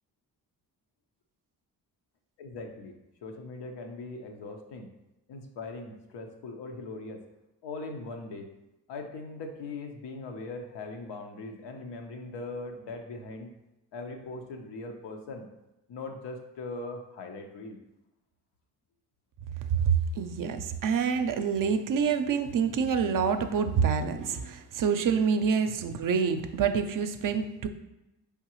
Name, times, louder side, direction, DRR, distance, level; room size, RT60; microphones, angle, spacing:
voice 1, 2.4-2.9 3.2-4.9 5.3-7.2 7.6-8.5 8.9-13.5 13.9-15.5 15.9-17.8, left 3 dB, 85° left, 3 dB, 0.7 m, -40 dB
voice 2, 19.7-27.7, right 6 dB, 55° right, 8 dB, 0.5 m, -27 dB
4.6 x 3.5 x 3.0 m, 0.96 s
cardioid pair, 70°, 40 cm